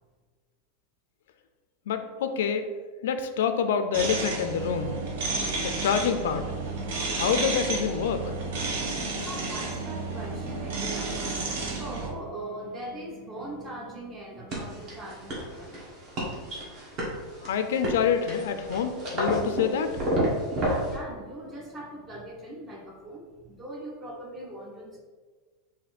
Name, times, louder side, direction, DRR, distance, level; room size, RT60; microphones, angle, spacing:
voice 1, 1.9-2.7 3.0-5.0 5.6-6.5 7.1-8.2 17.4-20.0, left 7 dB, 85° left, 8 dB, 0.4 m, -27 dB
sound 1, 3.9-12.1, right 3 dB, 70° right, 0.9 m, -31 dB
voice 2, 9.2-15.8 20.5-25.0, right 1 dB, 15° right, -1 dB, 0.8 m, -40 dB
sound 2, 14.5-21.0, equal, 35° right, 1.3 m, -31 dB
4.1 x 2.7 x 4.3 m, 1.4 s
supercardioid pair, 165°, 0 cm